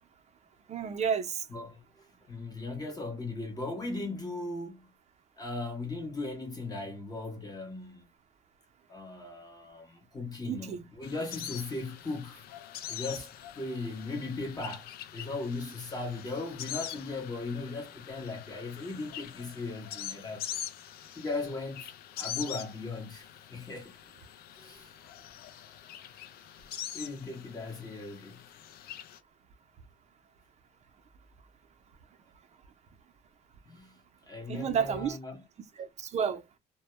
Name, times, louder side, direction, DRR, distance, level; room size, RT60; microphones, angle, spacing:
voice 1, 0.7-1.4 10.5-10.8 34.5-35.2 35.8-36.4, right 7 dB, 40° right, 0.5 m, -31 dB
voice 2, 1.5-4.9 5.4-8.1 8.9-12.4 12.9-20.6 21.2-21.9 22.2-24.0 24.5-24.9 26.9-28.4 33.7-34.0 34.3-35.4, left 3 dB, 25° left, 0.8 m, -38 dB
sound 1, 11.0-29.2, left 11 dB, 65° left, 0.4 m, -44 dB
2.1 x 2.1 x 2.9 m
cardioid pair, 110°, 17 cm